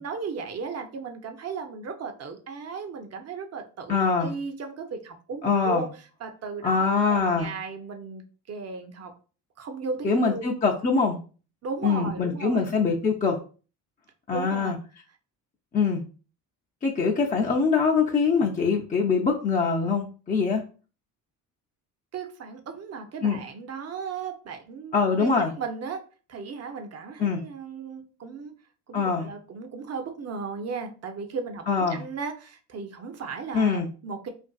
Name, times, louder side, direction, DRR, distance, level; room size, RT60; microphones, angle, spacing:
voice 1, 0.0-5.9 6.2-9.1 9.6-10.5 11.6-12.7 14.3-14.8 22.1-26.0 26.3-28.5 28.9-34.3, right 5 dB, 40° right, 6 dB, 0.6 m, -36 dB
voice 2, 3.9-4.3 5.4-5.9 6.6-7.5 10.0-11.2 11.8-13.4 14.3-14.8 15.7-16.0 16.8-20.6 23.2-23.4 24.9-25.5 27.2-27.4 28.9-29.3 31.7-32.0 33.5-33.9, left 5 dB, 20° left, -2 dB, 0.4 m, -23 dB
2.5 x 2.4 x 2.3 m, 0.37 s
supercardioid pair, 70°, 41 cm